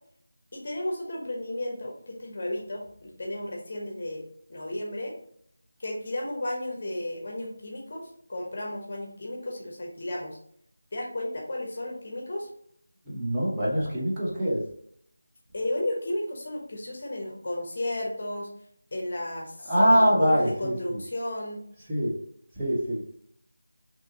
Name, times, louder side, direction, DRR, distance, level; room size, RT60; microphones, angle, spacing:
voice 1, 0.5-4.2 4.5-5.1 5.8-10.4 10.9-12.5 15.5-18.5 18.9-21.6, left 1 dB, 40° left, 0 dB, 0.9 m, -33 dB
voice 2, 13.1-14.6 19.7-21.0 21.9-22.1 22.6-23.2, equal, 10° right, -10 dB, 1.0 m, -24 dB
4.9 x 3.0 x 2.8 m, 0.66 s
figure-of-eight pair, 165°, 0 cm